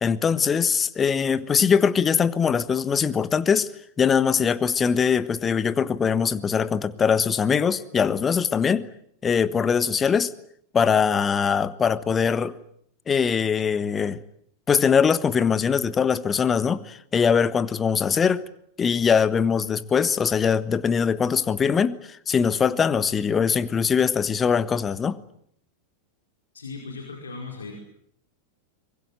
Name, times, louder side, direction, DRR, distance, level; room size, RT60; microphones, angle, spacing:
voice 1, 0.0-3.7 4.0-8.9 9.2-10.3 10.7-12.5 13.1-14.2 14.7-18.4 18.8-25.2, left 6 dB, 20° left, 1.3 m, -22 dB
voice 2, 26.5-27.8, left 4 dB, 70° left, 5.0 m, -37 dB
24.5 x 22.0 x 9.1 m
figure-of-eight pair, 90°, 0 cm